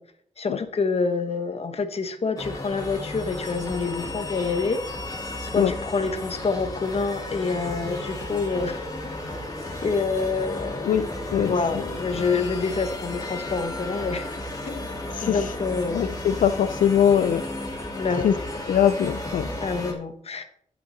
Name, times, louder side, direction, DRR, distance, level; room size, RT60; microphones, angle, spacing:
voice 1, 0.4-4.8 5.4-9.1 9.8-10.9 11.3-14.2 14.6-14.9 15.2-16.1 17.9-18.4 19.6-20.4, left 4 dB, 50° left, 8 dB, 1.1 m, -27 dB
sound 1, 2.4-19.9, left 1 dB, 25° left, 1.8 m, -34 dB
voice 2, 10.8-11.9 15.1-15.5 15.9-17.4 18.2-18.4 18.7-19.5, left 9 dB, 90° left, 11 dB, 0.4 m, -22 dB
12.0 x 5.2 x 4.0 m, 0.65 s
wide cardioid pair, 105°, 13 cm